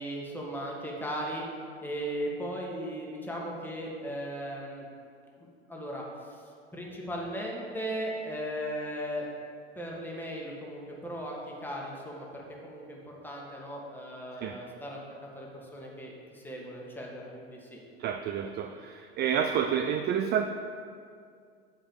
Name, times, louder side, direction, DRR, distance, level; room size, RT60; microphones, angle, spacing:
voice 1, 0.0-1.5 1.8-4.9 5.7-6.4 6.7-9.2 9.8-15.0 15.3-17.8, equal, 5° left, -3 dB, 1.8 m, -37 dB
voice 2, 18.0-20.5, right 8 dB, 30° right, 7 dB, 0.4 m, -29 dB
7.5 x 5.2 x 6.7 m, 2.3 s
hypercardioid pair, 85°, 32 cm